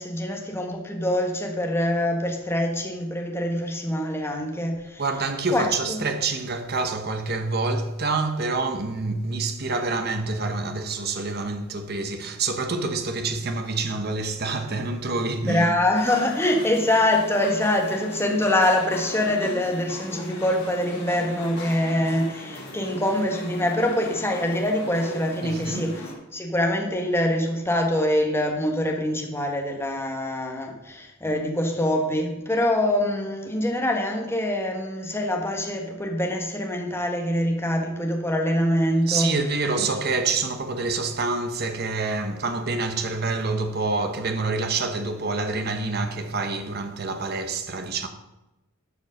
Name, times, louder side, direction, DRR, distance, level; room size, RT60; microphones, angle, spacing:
voice 1, 0.0-5.0 5.5-6.0 15.5-26.0 26.3-39.3, left 1 dB, 10° left, 1.5 m, -24 dB
voice 2, 5.0-15.7 25.4-25.9 39.1-48.1, right 3 dB, 45° right, 1.0 m, -27 dB
sound 1, 15.9-26.1, left 1 dB, 50° left, 2.8 m, -38 dB
11.5 x 5.2 x 6.5 m
head